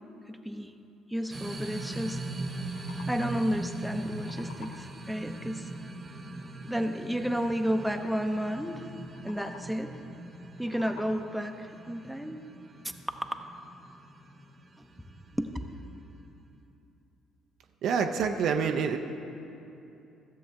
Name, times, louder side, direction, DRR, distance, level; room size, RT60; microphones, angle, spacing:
voice 1, 0.3-0.7 1.1-2.2 3.1-5.6 6.7-8.8 9.2-9.9 10.6-12.4 14.8-14.9 15.4-15.5, equal, 5° right, 5 dB, 0.7 m, -32 dB
sound 1, 1.3-16.4, right 2 dB, 30° right, 1.1 m, -41 dB
sound 2, 2.5-3.6 3.9-5.1 9.0-9.9 10.4-11.5, left 5 dB, 75° left, 0.5 m, -50 dB
voice 2, 17.8-19.0, right 6 dB, 60° right, 6 dB, 0.5 m, -27 dB
14.0 x 7.3 x 3.4 m, 2.8 s
hypercardioid pair, 50°, 0 cm